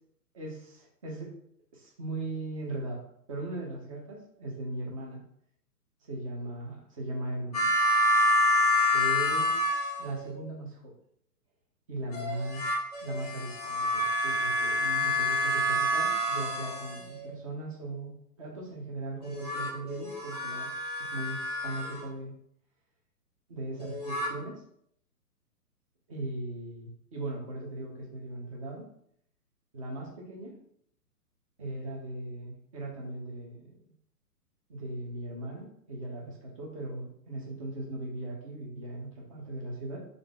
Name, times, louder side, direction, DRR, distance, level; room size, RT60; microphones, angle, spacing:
voice 1, 0.3-1.3 1.7-3.0 3.3-5.2 6.0-7.7 8.9-10.9 11.9-20.7 21.0-22.4 23.5-24.6 26.1-28.9 29.7-30.5 31.6-33.8 34.7-40.0, right 2 dB, 20° right, -2 dB, 0.6 m, -38 dB
sound 1, 7.5-10.4 12.1-17.3 19.2-22.0 23.8-24.3, left 1 dB, 25° left, 0.4 m, -28 dB
3.2 x 2.4 x 3.7 m, 0.69 s
figure-of-eight pair, 125°, 48 cm